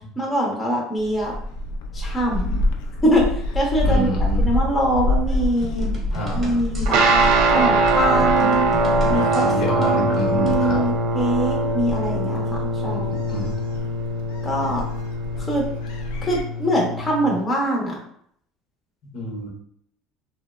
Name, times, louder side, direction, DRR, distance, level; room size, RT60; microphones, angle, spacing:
voice 1, 0.2-1.3 1.9-2.6 3.0-4.1 4.4-5.9 6.3-7.1 7.5-8.7 9.1-13.1 14.4-14.8 15.5-15.7 16.2-18.0, right 1 dB, 15° left, -3 dB, 0.6 m, -23 dB
Gull seagull, 1.0-16.4, left 1 dB, 80° left, 0.3 m, -28 dB
voice 2, 3.8-4.5 6.1-6.6 9.2-10.8 12.8-13.6 14.6-14.7 19.1-19.5, equal, 55° left, -1 dB, 0.7 m, -28 dB
sound 1, 5.6-10.7, equal, 25° right, 0.8 m, -36 dB
sound 2, 6.9-17.4, right 2 dB, 75° right, 0.3 m, -22 dB
2.6 x 2.0 x 2.3 m, 0.67 s
cardioid pair, 125°, 0 cm